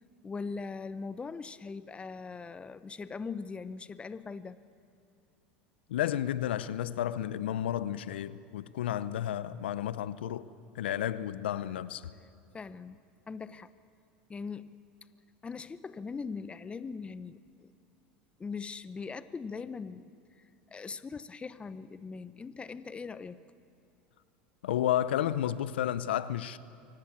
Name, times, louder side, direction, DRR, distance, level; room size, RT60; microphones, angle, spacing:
voice 1, 0.2-4.6 12.5-13.7 14.3-14.7 15.4-17.7 18.4-23.4, left 5 dB, 20° left, 0.9 m, -41 dB
voice 2, 5.9-10.5 10.7-12.0 24.6-26.6, left 11 dB, 80° left, 0.7 m, -32 dB
24.5 x 18.5 x 8.6 m
hypercardioid pair, 95°, 6 cm